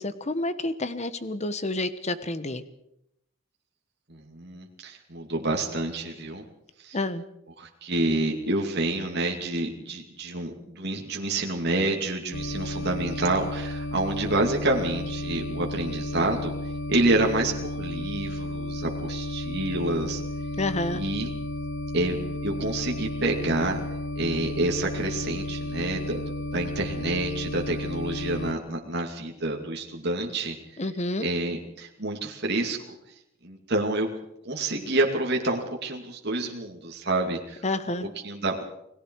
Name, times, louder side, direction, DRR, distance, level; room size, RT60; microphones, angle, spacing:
voice 1, 0.0-2.6 6.9-7.2 20.6-21.0 30.8-31.3 37.6-38.1, left 2 dB, 35° left, 12 dB, 1.2 m, -29 dB
voice 2, 4.1-6.4 6.8-7.0 7.6-16.5 16.9-20.2 20.9-21.3 21.9-23.8 24.2-30.6 31.2-33.0 33.4-34.1 34.4-37.6 38.0-38.6, right 2 dB, 55° right, 1 dB, 2.6 m, -28 dB
sound 1, 12.3-28.5, left 1 dB, 75° left, 1.2 m, -33 dB
29.5 x 19.0 x 4.7 m, 0.79 s
head